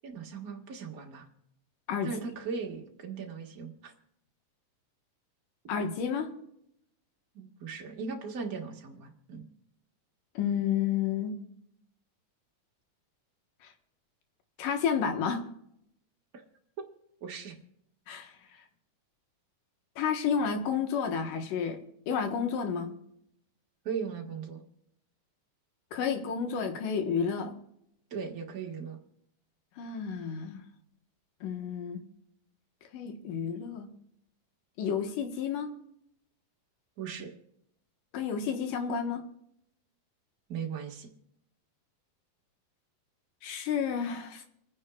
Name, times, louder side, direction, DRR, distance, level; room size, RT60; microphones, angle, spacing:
voice 1, 0.0-1.3 2.0-3.9 7.3-9.4 17.2-17.5 23.8-24.6 28.1-29.0 37.0-37.3 40.5-41.1, right 6 dB, 40° right, 1 dB, 1.4 m, -38 dB
voice 2, 5.7-6.3 10.4-11.4 14.6-15.4 18.1-18.3 20.0-21.8 22.1-22.9 25.9-27.5 29.8-30.6 31.4-32.0 32.9-33.9 34.8-35.7 38.1-39.2 43.4-44.4, left 7 dB, 75° left, 5 dB, 2.9 m, -31 dB
29.0 x 10.0 x 2.4 m, 0.75 s
omnidirectional pair, 3.9 m